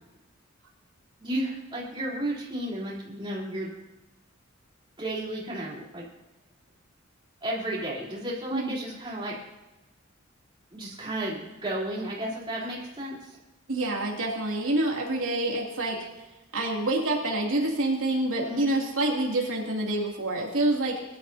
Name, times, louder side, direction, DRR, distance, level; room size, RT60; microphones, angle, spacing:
voice 1, 1.2-3.7 5.0-6.0 7.4-9.4 10.7-13.4 18.4-18.7, right 1 dB, 25° right, -5 dB, 3.6 m, -33 dB
voice 2, 13.7-16.0 16.5-21.0, right 2 dB, 75° right, -2 dB, 2.7 m, -27 dB
22.0 x 11.5 x 2.8 m, 1.1 s
head